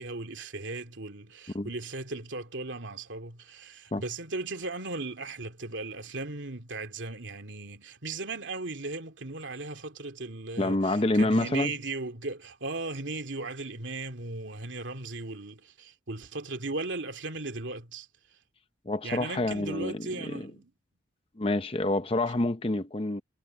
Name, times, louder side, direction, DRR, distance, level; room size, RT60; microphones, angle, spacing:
voice 1, 0.0-18.1 19.0-20.7, right 3 dB, 90° right, 2.6 m, -37 dB
voice 2, 10.6-11.7 18.9-20.1 20.3-20.5 21.4-23.2, left 2 dB, 30° left, 0.8 m, -27 dB
head